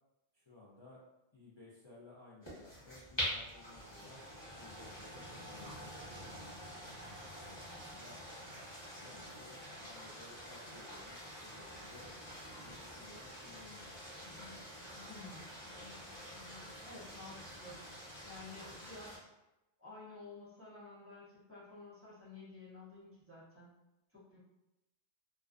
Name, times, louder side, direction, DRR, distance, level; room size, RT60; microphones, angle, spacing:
voice 1, 0.3-1.0 1.3-4.2 4.6-6.4 7.5-8.2 8.5-12.1 12.6-14.0, left 2 dB, 45° left, -7 dB, 0.3 m, -58 dB
sound 1, 2.4-19.2, equal, 25° left, 0.9 m, -46 dB
voice 2, 15.1-15.5 16.8-17.8 18.2-19.3 19.8-23.7 24.1-24.4, left 3 dB, 15° right, -9 dB, 0.5 m, -52 dB
2.3 x 2.2 x 2.4 m, 0.93 s
omnidirectional pair, 1.2 m